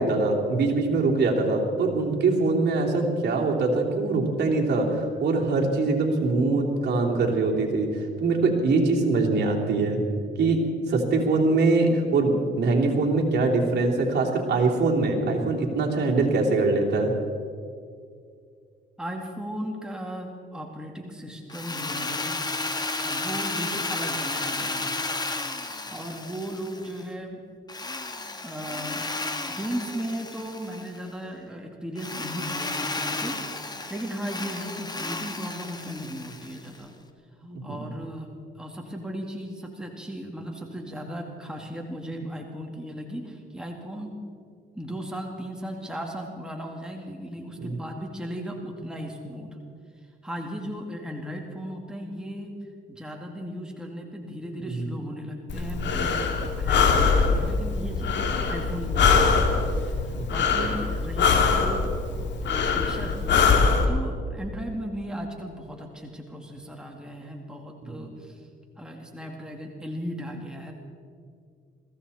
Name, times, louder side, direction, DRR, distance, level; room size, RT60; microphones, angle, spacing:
voice 1, 0.0-7.9 8.2-10.0 10.4-10.6 10.9-17.1 37.4-37.9 47.6-47.7 54.6-54.9 60.1-60.3 60.6-60.7 67.8-68.0, right 3 dB, 55° right, -1 dB, 3.1 m, -23 dB
voice 2, 19.0-22.4 23.0-25.0 25.7-27.4 28.4-29.1 29.5-36.9 37.6-38.3 38.6-44.2 44.8-49.6 50.2-52.5 52.9-58.2 58.5-59.4 59.8-63.5 63.9-68.5 68.8-70.7, equal, 5° right, 0 dB, 2.2 m, -36 dB
Drill, 21.5-27.0 27.7-31.0 32.0-36.8, left 3 dB, 20° left, 1.3 m, -33 dB
Breathing, 55.5-63.8, left 5 dB, 65° left, 2.0 m, -23 dB
21.5 x 15.5 x 4.3 m, 2.2 s
cardioid pair, 90°, 20 cm